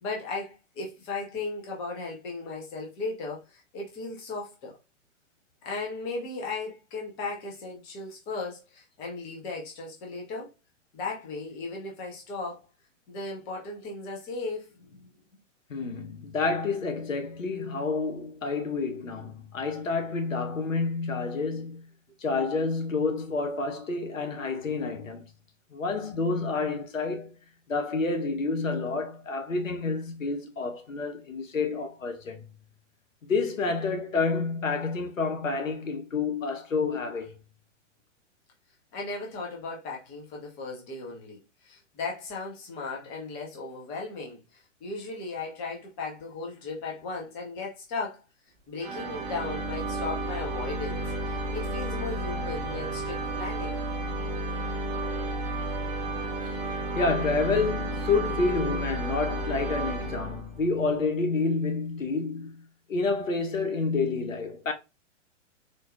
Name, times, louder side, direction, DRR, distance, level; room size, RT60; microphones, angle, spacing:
voice 1, 0.0-4.8 5.6-10.5 10.9-12.6 13.1-15.1 38.9-48.2 48.7-53.8, left 3 dB, 10° left, 0.3 m, -36 dB
voice 2, 15.7-21.8 22.2-25.2 25.7-27.3 27.7-32.5 33.2-37.4 56.4-56.6 56.9-62.6 62.9-64.7, left 4 dB, 85° left, 0.7 m, -29 dB
sound 1, 48.8-60.7, right 1 dB, 25° right, 0.6 m, -32 dB
3.8 x 2.3 x 2.4 m
figure-of-eight pair, 110°, 38 cm